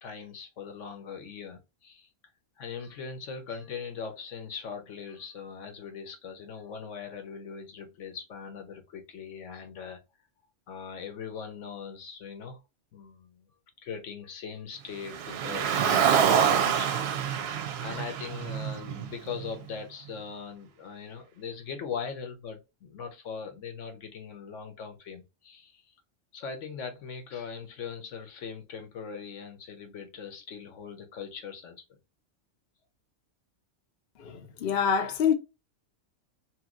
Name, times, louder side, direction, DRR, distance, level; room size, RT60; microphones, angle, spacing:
voice 1, 0.0-2.1 2.6-10.0 10.7-12.6 12.9-13.5 13.8-25.8 26.3-32.0, left 6 dB, 75° left, 1.1 m, -40 dB
Car, 15.1-19.4, right 8 dB, 65° right, 0.7 m, -26 dB
voice 2, 34.2-35.3, left 7 dB, 60° left, 0.7 m, -26 dB
2.9 x 2.7 x 2.4 m
omnidirectional pair, 1.3 m